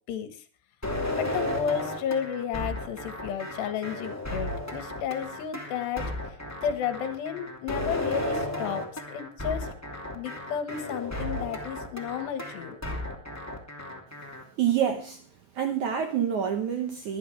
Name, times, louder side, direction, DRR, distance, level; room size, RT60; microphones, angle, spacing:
voice 1, 0.1-0.4 1.1-6.1 6.6-9.7 10.2-12.8, left 8 dB, 80° left, 10 dB, 3.6 m, -32 dB
sound 1, 0.8-14.4, left 1 dB, 5° left, 1.7 m, -34 dB
voice 2, 14.6-15.2 15.6-17.2, right 9 dB, 65° right, 6 dB, 1.9 m, -27 dB
22.5 x 11.0 x 3.3 m, 0.37 s
omnidirectional pair, 4.9 m